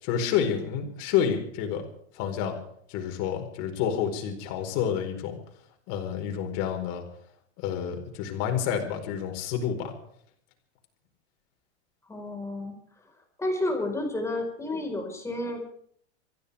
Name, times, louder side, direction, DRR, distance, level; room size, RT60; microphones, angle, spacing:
voice 1, 0.0-1.8 2.1-2.6 2.9-5.4 5.9-7.0 7.6-9.9, left 8 dB, 50° left, 3 dB, 4.7 m, -29 dB
voice 2, 12.1-12.7 13.4-15.7, left 1 dB, 10° left, 2 dB, 4.8 m, -30 dB
26.5 x 15.0 x 3.6 m, 0.62 s
hypercardioid pair, 125°, 34 cm